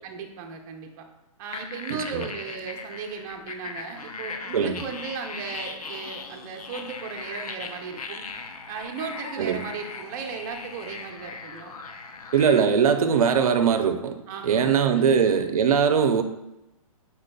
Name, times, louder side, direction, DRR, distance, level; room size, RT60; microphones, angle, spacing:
voice 1, 0.0-1.1 1.4-8.2 8.7-11.8 14.3-15.3, right 5 dB, 30° right, 2 dB, 0.6 m, -36 dB
sound 1, 1.5-12.6, left 4 dB, 90° left, 0.5 m, -39 dB
voice 2, 12.3-14.1 14.4-16.2, right 7 dB, 80° right, 7 dB, 0.5 m, -21 dB
5.0 x 4.4 x 2.2 m, 0.91 s
hypercardioid pair, 145°, 18 cm